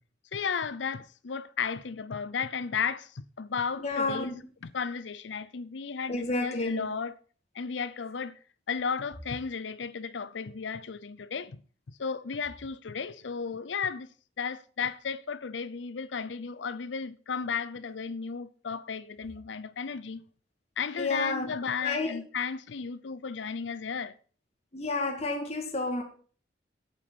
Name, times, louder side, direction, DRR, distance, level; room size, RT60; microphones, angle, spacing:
voice 1, 0.3-4.4 4.7-7.1 7.5-8.4 8.7-11.6 11.9-14.1 14.4-20.2 20.8-24.1, left 6 dB, 70° left, 0.6 m, -34 dB
voice 2, 3.8-4.5 6.1-6.9 20.9-21.5 21.8-22.2 24.7-26.0, left 3 dB, 35° left, 2.1 m, -30 dB
8.7 x 8.4 x 6.8 m
head